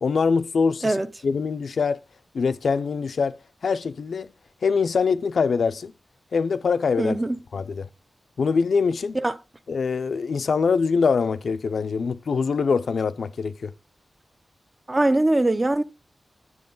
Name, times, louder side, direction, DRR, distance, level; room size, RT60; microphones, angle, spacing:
voice 1, 0.0-1.0 1.2-2.0 2.3-4.3 4.6-5.9 6.3-7.1 7.5-7.9 8.4-9.2 9.7-13.7, left 5 dB, 80° left, 0.5 m, -23 dB
voice 2, 7.0-7.4 9.1-9.4 14.9-15.8, right 2 dB, 25° right, 0.6 m, -21 dB
9.6 x 7.6 x 3.9 m
wide cardioid pair, 120°, 0 cm